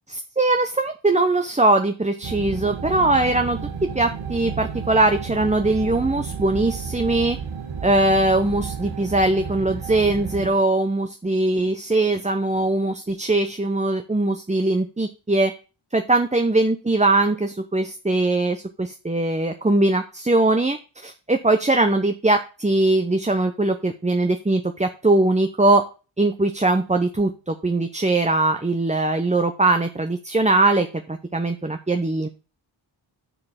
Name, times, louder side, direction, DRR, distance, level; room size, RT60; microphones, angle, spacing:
voice 1, 0.1-3.6 3.9-7.4 7.8-15.5 15.9-25.8 26.2-32.3, right 2 dB, 15° right, 7 dB, 0.8 m, -21 dB
sound 1, 2.2-10.5, right 6 dB, 90° right, 1.5 m, -32 dB
10.0 x 4.9 x 5.8 m, 0.34 s
cardioid pair, 45°, 47 cm